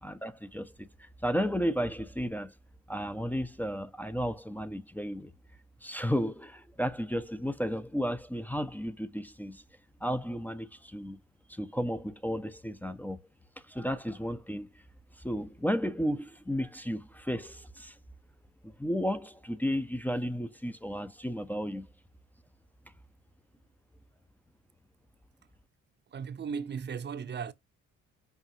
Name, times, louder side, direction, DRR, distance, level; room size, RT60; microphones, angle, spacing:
voice 1, 0.0-2.5 2.9-5.3 5.8-9.6 10.0-11.2 11.5-13.2 13.7-14.7 15.2-18.0 18.6-21.9, equal, 5° left, 0.4 m, -33 dB
voice 2, 26.1-27.5, right 6 dB, 35° right, 0.6 m, -36 dB
5.6 x 2.4 x 2.7 m
cardioid pair, 90°, 30 cm